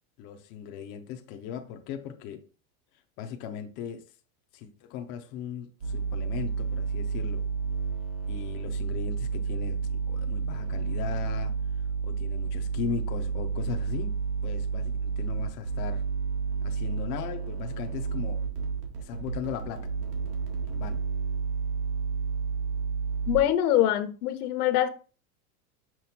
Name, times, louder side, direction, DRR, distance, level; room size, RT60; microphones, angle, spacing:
voice 1, 0.2-2.4 3.2-4.1 4.5-7.5 8.3-11.5 12.0-14.1 14.4-16.0 16.6-18.4 19.0-19.9 20.7-21.0, left 8 dB, 25° left, 0.4 m, -38 dB
sound 1, 5.8-23.4, right 5 dB, 80° right, 1.9 m, -31 dB
voice 2, 23.3-24.9, left 12 dB, 75° left, 0.9 m, -24 dB
5.9 x 3.0 x 5.7 m
supercardioid pair, 160°, 45 cm